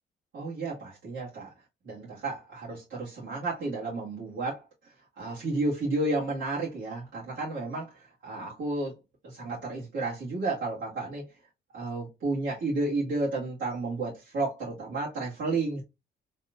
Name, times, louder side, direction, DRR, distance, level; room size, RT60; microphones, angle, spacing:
voice 1, 0.3-1.5 1.8-4.6 5.2-9.0 9.2-11.3 11.7-15.8, right 2 dB, 70° right, 1.9 m, -32 dB
4.2 x 3.1 x 2.5 m
cardioid pair, 90°, 20 cm